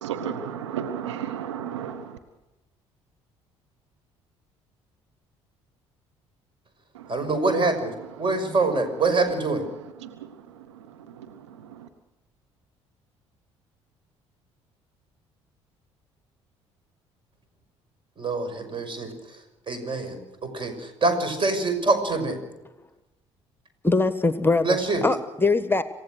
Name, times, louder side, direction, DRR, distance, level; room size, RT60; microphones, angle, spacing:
voice 1, 0.0-2.2 6.9-7.3 8.0-8.3 9.7-11.9, right 8 dB, 80° right, 7 dB, 1.3 m, -35 dB
voice 2, 7.1-7.9 8.2-9.6 18.2-19.1 19.7-22.4 24.6-25.0, right 3 dB, 35° right, 8 dB, 6.2 m, -25 dB
voice 3, 23.8-25.8, left 3 dB, 15° left, 12 dB, 1.3 m, -22 dB
27.5 x 16.0 x 6.5 m, 0.99 s
figure-of-eight pair, 50°, 15 cm